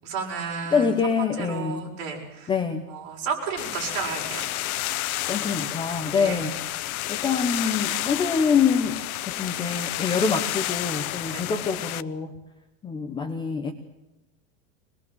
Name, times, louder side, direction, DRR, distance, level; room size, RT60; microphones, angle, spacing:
voice 1, 0.0-0.9 1.4-2.5 2.9-4.5 6.1-6.4 11.3-11.5, right 5 dB, 40° right, 0 dB, 7.0 m, -32 dB
voice 2, 0.7-1.9 2.5-2.9 5.3-6.7 7.1-12.4 12.8-13.7, left 5 dB, 10° left, 6 dB, 0.9 m, -25 dB
sound 1, 3.6-12.0, left 15 dB, 80° left, 1.0 m, -30 dB
24.5 x 20.5 x 8.0 m, 0.91 s
supercardioid pair, 175°, 43 cm